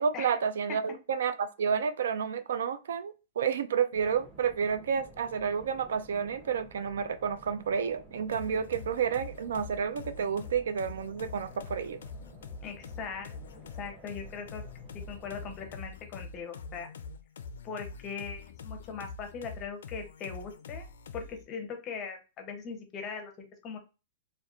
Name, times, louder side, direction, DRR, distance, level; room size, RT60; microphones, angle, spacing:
voice 1, 0.0-12.0, right 7 dB, 80° right, 0.3 m, -30 dB
sound 1, 3.9-15.9, right 2 dB, 10° right, 0.7 m, -53 dB
sound 2, 8.3-21.5, left 4 dB, 85° left, 0.3 m, -45 dB
voice 2, 12.6-13.4 13.8-14.6 15.1-16.9 17.6-20.9 21.1-23.8, left 5 dB, 25° left, 0.6 m, -40 dB
2.9 x 2.1 x 2.4 m
hypercardioid pair, 160°, 0 cm